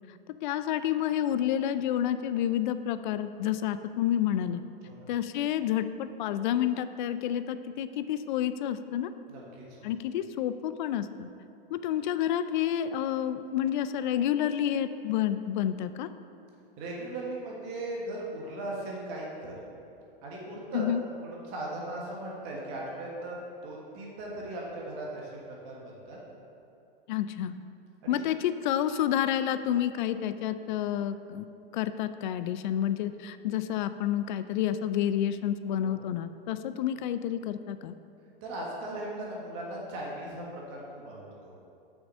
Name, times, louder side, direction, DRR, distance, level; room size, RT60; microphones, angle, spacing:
voice 1, 0.4-4.6 5.1-9.1 9.8-11.3 11.7-16.1 20.7-21.0 27.1-27.5 28.1-31.5 31.7-37.9, left 10 dB, 55° left, 12 dB, 0.4 m, -29 dB
voice 2, 9.3-9.6 16.8-19.5 20.2-20.8 21.2-26.2 28.0-28.2 35.8-35.9 38.4-41.5, right 1 dB, 40° right, -3 dB, 1.5 m, -38 dB
6.3 x 6.0 x 5.4 m, 2.6 s
hypercardioid pair, 130°, 30 cm